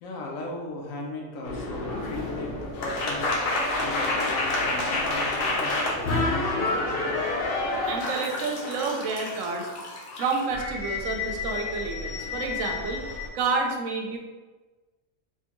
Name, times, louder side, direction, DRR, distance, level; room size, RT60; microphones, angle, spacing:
voice 1, 0.0-3.3 3.8-7.1, left 1 dB, 80° left, -1 dB, 1.1 m, -37 dB
sound 1, 1.4-13.3, left 2 dB, 60° left, 0.7 m, -29 dB
voice 2, 7.9-9.7 10.2-14.2, right 4 dB, 75° right, 2 dB, 0.9 m, -29 dB
3.5 x 2.2 x 2.9 m, 1.2 s
omnidirectional pair, 1.4 m